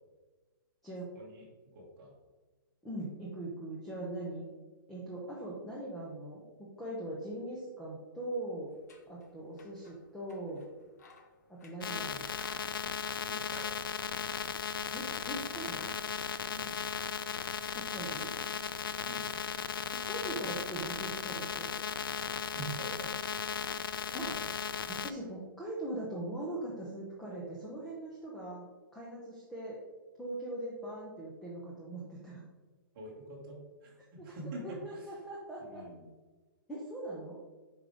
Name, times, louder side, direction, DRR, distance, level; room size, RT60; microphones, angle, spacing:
voice 1, 1.7-2.1 13.2-13.7 16.5-16.8 19.0-19.3 22.4-23.1 23.6-24.5 32.9-35.0 35.6-36.0, right 2 dB, 20° right, -5 dB, 1.9 m, -46 dB
voice 2, 2.8-4.5 4.9-6.4 6.8-8.7 9.1-10.7 11.5-12.3 14.9-15.9 17.7-18.3 19.9-21.7 24.1-24.3 24.9-28.7 28.9-29.8 30.2-32.4 34.2-34.3 34.6-35.8 36.7-37.4, right 1 dB, ahead, -5 dB, 0.4 m, -41 dB
sound 1, 8.7-18.8, left 4 dB, 50° left, 0.9 m, -59 dB
sound 2, 11.8-25.1, left 7 dB, 80° left, 0.5 m, -36 dB
7.4 x 4.9 x 3.4 m, 1.3 s
hypercardioid pair, 180°, 12 cm